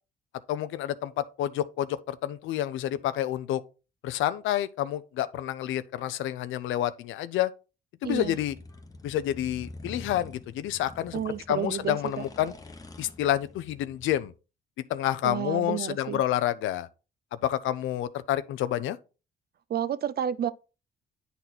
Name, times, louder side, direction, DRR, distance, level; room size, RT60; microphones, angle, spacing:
voice 1, 0.5-3.6 4.0-7.5 8.0-8.6 9.0-12.5 13.0-14.3 14.9-16.9 17.4-19.0, left 12 dB, 85° left, 0.5 m, -29 dB
sound 1, 8.0-14.3, left 2 dB, 20° left, 0.9 m, -46 dB
voice 2, 8.0-8.4 11.1-12.2 15.2-16.2 19.7-20.5, right 9 dB, 50° right, 0.6 m, -31 dB
9.1 x 4.1 x 4.2 m
cardioid pair, 90°, 20 cm